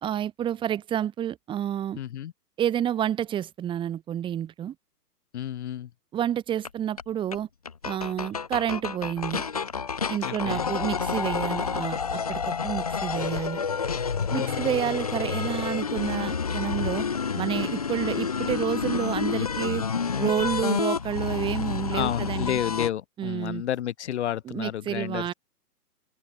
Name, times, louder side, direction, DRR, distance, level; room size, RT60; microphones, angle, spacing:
voice 1, 0.0-2.0 2.6-4.7 6.1-7.5 7.8-9.4 10.1-13.6 14.3-17.0 17.3-19.8 20.2-22.6 23.2-23.6 24.5-25.3, right 10 dB, 10° right, 3.2 m, -29 dB
voice 2, 2.0-2.3 5.3-5.9 10.2-10.7 14.3-14.9 21.9-25.3, left 11 dB, 40° left, 5.4 m, -31 dB
sound 1, 6.6-6.7 7.0-7.1 7.3-7.4 7.7-22.9, left 6 dB, 25° left, 0.6 m, -29 dB
open air
hypercardioid pair, 170°, 49 cm